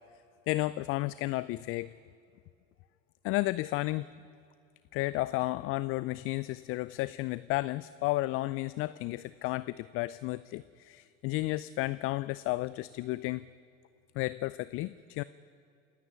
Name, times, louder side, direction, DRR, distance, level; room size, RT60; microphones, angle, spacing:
voice 1, 0.5-1.9 3.2-4.1 4.9-13.5 14.2-15.2, left 19 dB, 35° left, 17 dB, 0.4 m, -32 dB
27.5 x 9.8 x 9.7 m, 2.4 s
hypercardioid pair, 90°, 40 cm